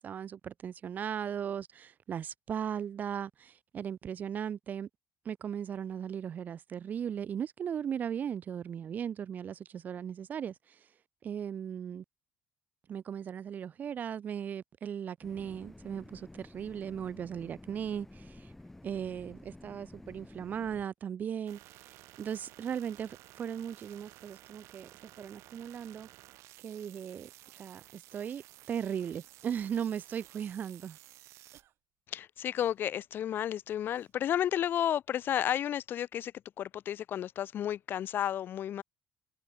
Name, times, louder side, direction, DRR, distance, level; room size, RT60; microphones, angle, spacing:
voice 1, 0.0-4.9 5.2-10.8 11.2-12.0 12.9-18.5 18.8-24.9 25.2-26.1 26.6-31.0, right 8 dB, 35° right, 0.7 m, -37 dB
sound 1, 15.2-20.8, left 1 dB, 5° left, 1.2 m, -52 dB
sound 2, 21.5-31.6, right 17 dB, 75° right, 7.1 m, -55 dB
Cough, 29.6-30.4 30.8-31.0 31.5-31.8 32.5-32.8 33.9-34.1, right 12 dB, 55° right, 4.2 m, -66 dB
voice 2, 32.1-36.3 36.6-38.8, left 10 dB, 45° left, 0.8 m, -32 dB
cardioid pair, 155°, 5 cm